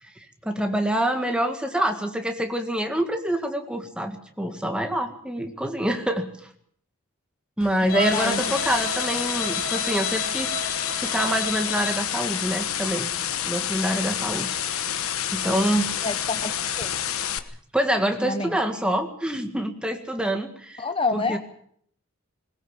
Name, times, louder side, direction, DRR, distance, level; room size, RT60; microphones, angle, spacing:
voice 1, 0.0-6.3 7.6-10.6 11.0-13.1 13.5-14.9 15.3-15.9 17.7-21.4, right 1 dB, 5° right, 4 dB, 1.9 m, -26 dB
sound 1, 7.6-17.4, left 9 dB, 75° left, 1.3 m, -29 dB
voice 2, 7.8-8.4 16.0-16.5 16.8-16.9 18.2-18.5 20.8-21.4, left 3 dB, 25° left, 9 dB, 0.9 m, -27 dB
Bowed string instrument, 7.9-12.1, left 2 dB, 45° left, 3.2 m, -31 dB
20.0 x 20.0 x 7.5 m, 0.64 s
head